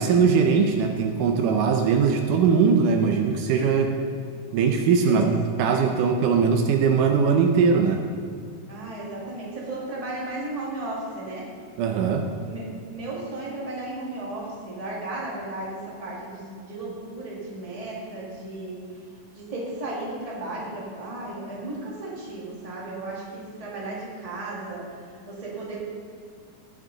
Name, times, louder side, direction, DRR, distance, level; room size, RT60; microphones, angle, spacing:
voice 1, 0.0-4.0 4.5-8.1 11.8-12.3, right 5 dB, 80° right, 4 dB, 2.2 m, -21 dB
voice 2, 8.7-11.5 12.4-18.8 19.3-24.9 25.3-25.8, right 2 dB, 15° right, -5 dB, 1.4 m, -34 dB
17.0 x 6.2 x 3.9 m, 2.2 s
omnidirectional pair, 3.8 m